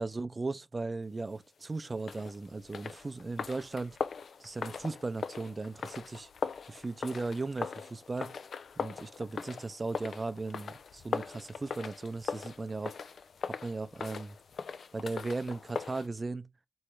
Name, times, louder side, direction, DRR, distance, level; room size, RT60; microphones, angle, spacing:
voice 1, 0.0-4.0 4.4-6.3 6.7-8.3 8.8-13.0 13.4-14.3 14.9-16.5, right 3 dB, 45° right, 0.6 m, -37 dB
sound 1, 2.0-16.1, left 6 dB, 80° left, 0.4 m, -40 dB
3.6 x 3.2 x 4.6 m
cardioid pair, 45°, 0 cm